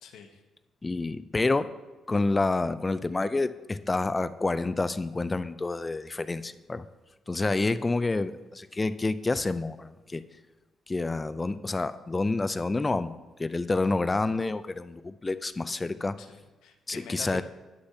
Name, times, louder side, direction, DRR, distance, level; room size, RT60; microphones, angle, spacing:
voice 1, 0.0-0.4 7.3-7.6 16.2-17.4, left 7 dB, 85° left, 5 dB, 0.8 m, -45 dB
voice 2, 0.8-1.7 2.1-6.8 7.3-10.2 10.9-16.2 16.9-17.4, left 3 dB, 20° left, 14 dB, 0.3 m, -28 dB
9.7 x 6.5 x 2.7 m, 1.2 s
cardioid pair, 90°, 0 cm